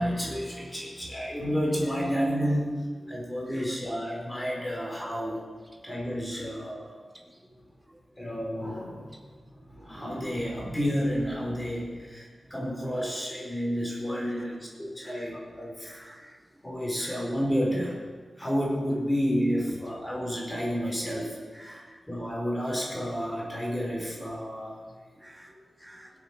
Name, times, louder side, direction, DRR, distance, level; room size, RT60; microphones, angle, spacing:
voice 1, 0.0-2.7 3.1-5.4 5.8-6.9 8.2-9.1 9.6-16.0 16.6-18.0 18.4-24.8, equal, 15° left, -3 dB, 4.9 m, -30 dB
voice 2, 15.8-16.3 17.0-17.2 21.5-22.0 25.2-26.1, equal, 10° right, 2 dB, 2.5 m, -50 dB
24.5 x 8.7 x 6.8 m, 1.6 s
wide cardioid pair, 105°, 0 cm